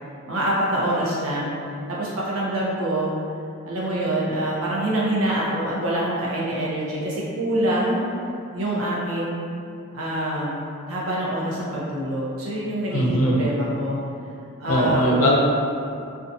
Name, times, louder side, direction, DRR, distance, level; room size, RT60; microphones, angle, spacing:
voice 1, 0.3-1.5 1.9-3.1 3.6-8.0 8.5-9.4 9.9-10.6 10.9-14.0 14.6-15.4, right 1 dB, 75° right, -6 dB, 0.6 m, -25 dB
voice 2, 12.9-13.4 14.7-15.4, equal, 75° left, -2 dB, 0.5 m, -20 dB
2.6 x 2.2 x 2.6 m, 2.5 s
head